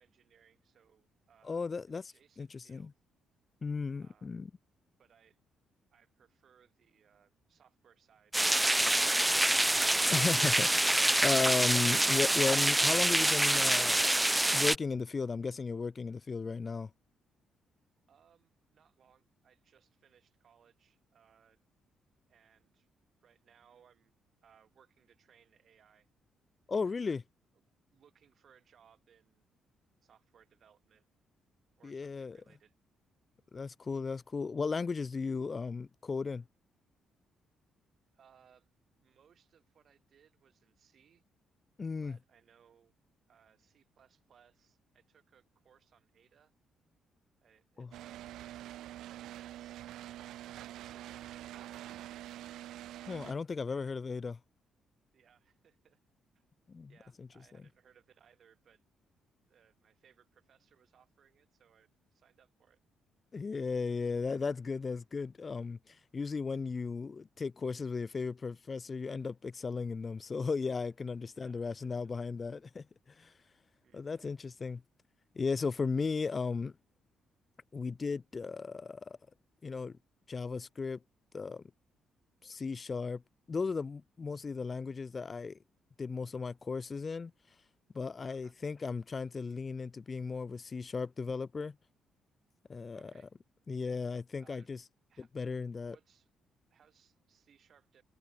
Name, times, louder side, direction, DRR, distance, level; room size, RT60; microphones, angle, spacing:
voice 1, 0.0-2.9 4.0-4.4 5.0-5.4 5.9-9.4 18.1-21.6 22.3-22.9 23.2-24.1 24.4-26.1 26.8-27.2 27.5-29.5 30.0-31.1 31.8-32.7 38.1-38.7 39.0-41.2 42.0-42.9 43.3-46.5 47.4-48.3 49.1-49.9 50.6-51.9 52.9-54.1 55.1-56.0 56.3-56.4 56.9-58.8 59.5-62.8 71.3-72.1 73.8-74.2 88.2-88.5 92.9-93.3 94.4-94.7 95.1-95.3 95.8-96.3 96.7-98.0, right 8 dB, 55° right, 7.7 m, -66 dB
voice 2, 1.4-2.0 2.4-2.9 3.6-4.5 10.1-14.0 14.5-16.9 26.7-27.2 31.8-32.4 33.5-36.4 41.8-42.2 47.8-47.9 53.1-54.4 56.7-56.9 57.2-57.3 63.3-72.8 73.2-73.3 73.9-74.8 75.4-76.7 77.7-79.2 79.6-80.0 80.3-81.0 81.3-81.6 82.4-83.2 83.5-85.6 86.0-87.3 87.9-91.7 92.7-93.1 93.7-94.8 95.3-96.0, left 4 dB, 35° left, 0.6 m, -35 dB
sound 1, 8.3-14.8, right 1 dB, 10° right, 0.3 m, -26 dB
sound 2, 47.9-53.3, right 13 dB, 85° right, 0.7 m, -46 dB
cardioid pair, 90°, 0 cm